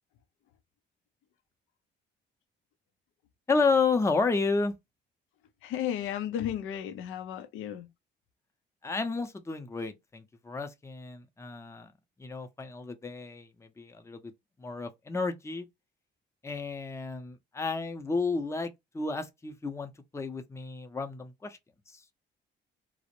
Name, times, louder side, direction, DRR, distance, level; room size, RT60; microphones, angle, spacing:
voice 1, 3.5-4.7 8.8-11.9 12.2-14.3 14.6-15.7 16.4-21.6 21.9-22.0, left 4 dB, 15° left, 0.5 m, -31 dB
voice 2, 5.6-7.9, left 10 dB, 90° left, 0.5 m, -34 dB
2.4 x 2.0 x 2.8 m
cardioid pair, 90°, 20 cm